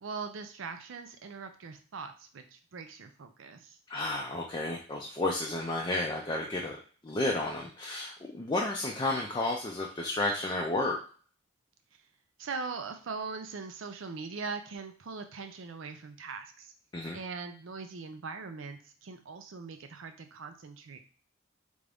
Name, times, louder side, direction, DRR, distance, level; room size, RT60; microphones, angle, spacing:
voice 1, 0.0-3.8 12.4-16.7 17.1-21.0, right 4 dB, 70° right, 7 dB, 0.5 m, -41 dB
voice 2, 3.9-6.8 7.0-11.0 16.9-17.2, left 2 dB, 20° left, -1 dB, 0.4 m, -32 dB
3.4 x 2.6 x 3.4 m, 0.43 s
head